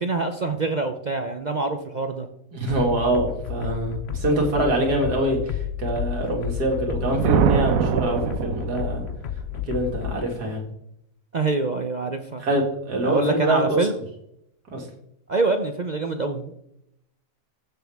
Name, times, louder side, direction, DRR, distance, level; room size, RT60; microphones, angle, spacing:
voice 1, 0.0-2.3 11.3-12.4 13.0-13.9 15.3-16.6, right 3 dB, 50° right, 6 dB, 0.5 m, -25 dB
voice 2, 2.5-9.1 9.7-10.6 12.4-13.8 14.7-14.9, right 1 dB, 85° right, 1 dB, 2.7 m, -24 dB
sound 1, 2.7-10.2, left 9 dB, 60° left, 0.7 m, -32 dB
Thunder, 6.8-9.2, right 9 dB, 70° right, 1.0 m, -23 dB
14.5 x 6.1 x 3.5 m, 0.76 s
omnidirectional pair, 1.7 m